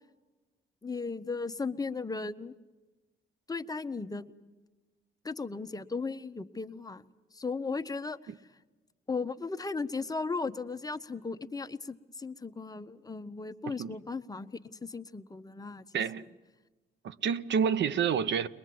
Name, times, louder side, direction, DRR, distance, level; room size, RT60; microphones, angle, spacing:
voice 1, 0.8-2.5 3.5-4.3 5.2-7.0 7.3-8.2 9.1-14.5 14.8-15.8, left 4 dB, 20° left, 0.9 m, -36 dB
voice 2, 13.6-14.0 15.9-16.2 17.0-18.5, right 7 dB, 65° right, 0.9 m, -29 dB
22.5 x 21.5 x 7.7 m
cardioid pair, 90°, 20 cm